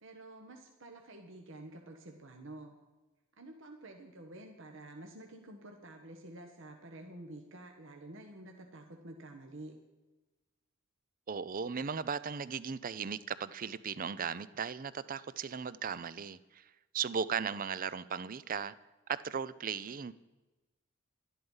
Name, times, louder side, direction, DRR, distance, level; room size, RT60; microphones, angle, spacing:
voice 1, 0.0-2.8 3.4-9.7, right 1 dB, 65° right, 3 dB, 1.4 m, -49 dB
voice 2, 11.3-18.7 19.1-20.1, right 6 dB, 40° right, 16 dB, 0.5 m, -37 dB
12.0 x 11.5 x 5.6 m, 1.1 s
head